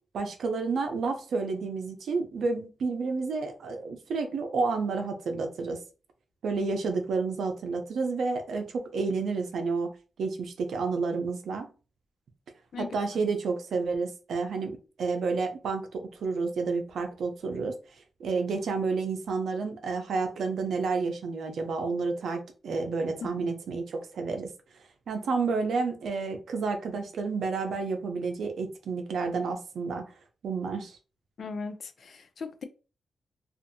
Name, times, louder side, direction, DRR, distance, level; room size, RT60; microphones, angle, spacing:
voice 1, 0.1-5.8 6.4-9.9 10.2-11.7 12.8-17.7 18.2-24.5 25.1-30.1 30.4-31.0, right 4 dB, 75° right, 0.5 m, -30 dB
voice 2, 31.4-32.6, left 4 dB, 55° left, 0.4 m, -38 dB
2.6 x 2.4 x 2.6 m
wide cardioid pair, 120°, 0 cm